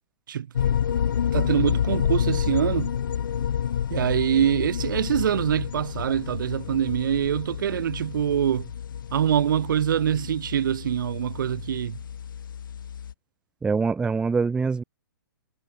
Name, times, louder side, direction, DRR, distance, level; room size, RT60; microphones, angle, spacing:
sound 1, 0.5-13.1, left 8 dB, 70° left, 6.2 m, -29 dB
voice 1, 1.3-2.9 3.9-8.7 9.1-12.0, right 9 dB, 65° right, 1.7 m, -24 dB
voice 2, 13.6-14.8, right 4 dB, 5° right, 0.5 m, -24 dB
hypercardioid pair, 130°, 11 cm